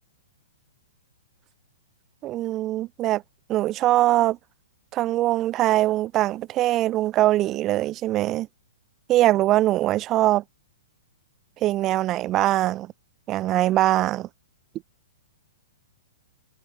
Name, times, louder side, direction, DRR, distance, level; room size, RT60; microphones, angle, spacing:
voice 1, 2.2-3.2 3.5-4.4 4.9-8.5 9.1-10.4 11.6-12.9 13.3-14.3, right 15 dB, 30° right, 1.7 m, -22 dB
figure-of-eight pair, 115°, 0 cm